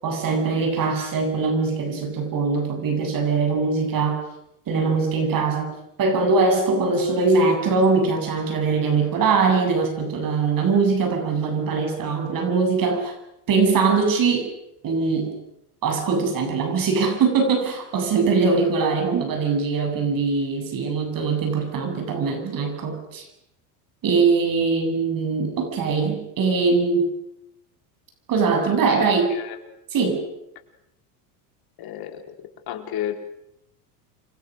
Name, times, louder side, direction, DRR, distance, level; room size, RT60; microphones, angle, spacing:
voice 1, 0.0-4.2 4.7-13.1 13.5-14.5 14.8-15.4 15.8-23.3 24.0-27.1 28.3-29.3 29.9-30.2, right 4 dB, 45° right, 5 dB, 7.9 m, -22 dB
voice 2, 28.9-29.6 31.8-32.3 32.7-33.1, left 10 dB, 50° left, 6 dB, 4.3 m, -31 dB
29.5 x 24.5 x 6.5 m, 0.82 s
supercardioid pair, 95°, 47 cm